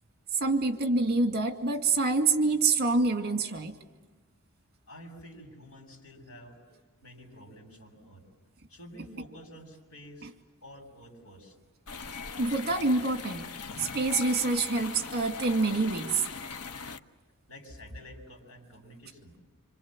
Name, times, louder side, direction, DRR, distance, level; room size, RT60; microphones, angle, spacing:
voice 1, 0.3-3.8 12.4-13.5 13.8-16.2, right 3 dB, 45° right, 6 dB, 2.3 m, -26 dB
voice 2, 4.9-8.2 8.7-10.3 10.6-11.6 17.5-19.3, equal, 65° left, 4 dB, 7.0 m, -50 dB
sound 1, 11.9-17.0, left 5 dB, 90° left, 1.1 m, -40 dB
27.5 x 26.5 x 7.5 m, 1.2 s
head